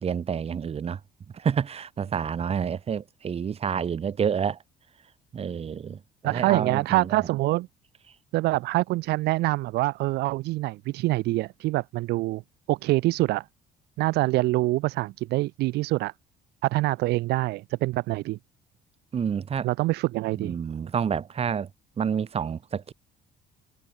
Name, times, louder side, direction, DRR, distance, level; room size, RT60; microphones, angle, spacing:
voice 1, 0.0-1.0 1.3-4.6 5.3-7.2 19.1-19.7 20.4-21.7 22.0-22.9, right 7 dB, 35° right, 1.4 m, -29 dB
voice 2, 6.2-7.7 8.3-12.4 12.7-13.4 14.0-16.1 16.6-18.4 19.6-20.5, right 19 dB, 80° right, 0.5 m, -25 dB
cardioid pair, 110°, 17 cm